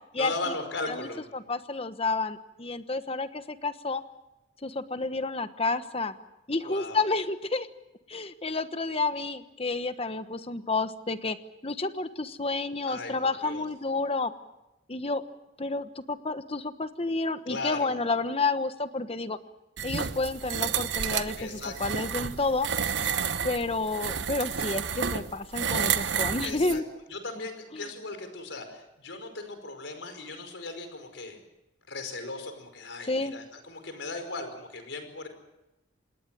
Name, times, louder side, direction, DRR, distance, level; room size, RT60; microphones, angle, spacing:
voice 1, 0.2-1.3 6.6-7.0 12.9-13.1 13.4-13.6 17.5-18.0 21.4-22.0 26.4-26.8 27.1-31.4 31.9-35.3, left 3 dB, 75° left, 7 dB, 5.2 m, -37 dB
voice 2, 1.3-4.0 4.6-6.1 6.5-7.7 8.1-11.4 11.6-14.3 14.9-15.2 15.6-19.4 19.8-22.7 23.4-26.8 27.7-27.9 33.0-33.3, left 3 dB, 30° left, 10 dB, 1.2 m, -30 dB
sound 1, 19.8-26.8, right 7 dB, 70° right, 1.1 m, -30 dB
27.0 x 20.0 x 7.7 m, 0.95 s
head